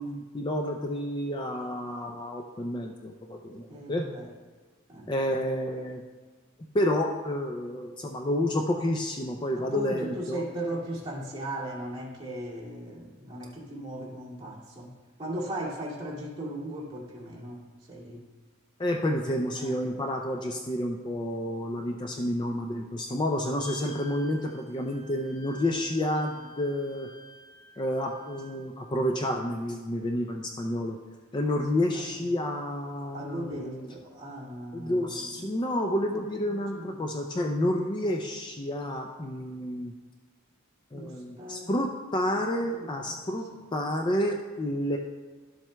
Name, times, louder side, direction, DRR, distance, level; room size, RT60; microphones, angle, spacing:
voice 1, 0.0-4.1 5.1-6.0 6.7-10.4 18.8-27.1 27.8-31.0 31.3-33.9 34.7-39.9 40.9-43.4 43.7-45.0, left 1 dB, 20° left, 2 dB, 0.4 m, -30 dB
voice 2, 3.7-4.3 4.9-5.1 9.5-14.9 15.2-18.2 19.6-19.8 22.1-22.3 31.9-32.3 33.1-35.3 36.5-37.1 40.9-41.7 42.8-43.2, right 1 dB, 25° right, -7 dB, 2.2 m, -38 dB
sound 1, 23.6-28.6, equal, 60° left, 2.7 m, -50 dB
12.5 x 7.4 x 2.2 m, 1.4 s
head